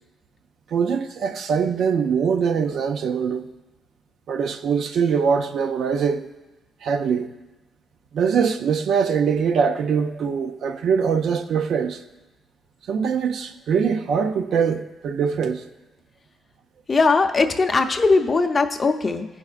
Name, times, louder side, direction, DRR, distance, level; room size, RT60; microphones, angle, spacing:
voice 1, 0.7-3.5 4.3-6.3 6.8-7.3 8.1-12.0 12.9-15.6, right 6 dB, 65° right, 0.5 m, -22 dB
voice 2, 16.9-19.3, left 3 dB, 30° left, 0.6 m, -19 dB
16.0 x 5.4 x 2.4 m
cardioid pair, 125°, 0 cm